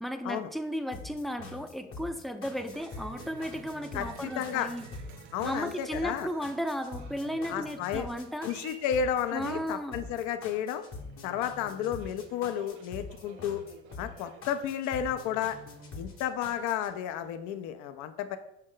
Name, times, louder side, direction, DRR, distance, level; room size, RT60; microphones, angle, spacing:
voice 1, 0.0-4.9 5.4-8.5 9.3-10.0, equal, ahead, 7 dB, 0.4 m, -35 dB
sound 1, 0.9-16.9, left 3 dB, 40° left, 0.9 m, -45 dB
Cheering, 2.5-17.7, right 6 dB, 75° right, 0.6 m, -53 dB
voice 2, 3.9-4.7 5.3-6.3 7.5-8.1 8.4-10.8 11.2-13.6 14.0-15.6 16.0-18.4, left 9 dB, 65° left, 9 dB, 0.4 m, -32 dB
5.4 x 2.1 x 3.7 m, 0.82 s
hypercardioid pair, 55°, 32 cm